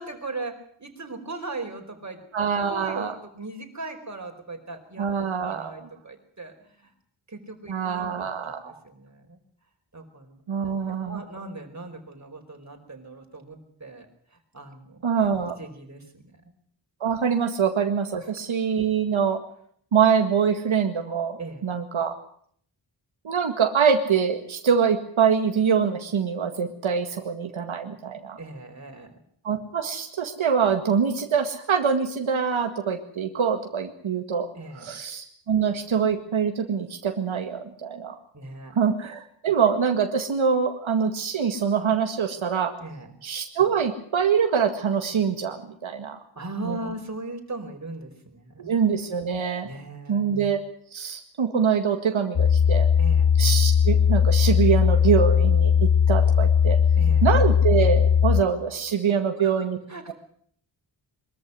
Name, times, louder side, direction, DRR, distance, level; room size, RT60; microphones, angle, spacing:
voice 1, 0.0-2.2 2.6-5.1 5.4-6.9 7.3-9.4 9.9-10.5 11.1-14.1 14.5-15.1 15.6-16.4 21.4-21.7 28.4-29.2 34.5-34.9 38.3-38.8 42.8-43.1 46.3-48.7 49.6-50.3 53.0-53.3 56.9-57.3 59.4-59.5 59.9-60.1, right 2 dB, 35° right, 4 dB, 4.9 m, -38 dB
voice 2, 2.3-3.2 5.0-5.9 7.7-8.7 10.5-11.2 15.0-15.6 17.0-19.4 19.9-22.1 23.2-28.4 29.4-34.5 34.8-38.2 38.8-42.7 43.2-46.2 46.6-46.8 48.6-49.7 50.1-50.6 50.9-52.9 53.4-56.8 57.2-59.8, right 7 dB, 90° right, 5 dB, 2.0 m, -24 dB
sound 1, 52.4-58.4, left 7 dB, 65° left, 1.3 m, -19 dB
23.0 x 14.0 x 9.7 m, 0.63 s
wide cardioid pair, 85°, 46 cm